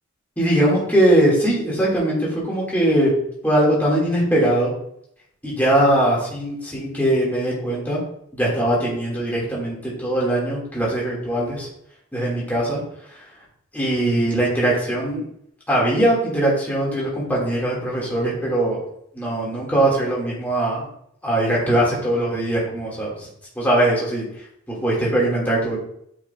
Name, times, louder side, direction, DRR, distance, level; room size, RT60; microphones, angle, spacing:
voice 1, 0.4-3.1 3.4-4.7 5.4-8.0 8.3-11.7 12.1-12.8 13.7-15.3 15.7-18.8 19.1-20.8 21.2-23.1 23.6-24.2 24.7-25.8, right 1 dB, 10° left, -6 dB, 1.9 m, -21 dB
8.6 x 4.8 x 2.3 m, 0.72 s
head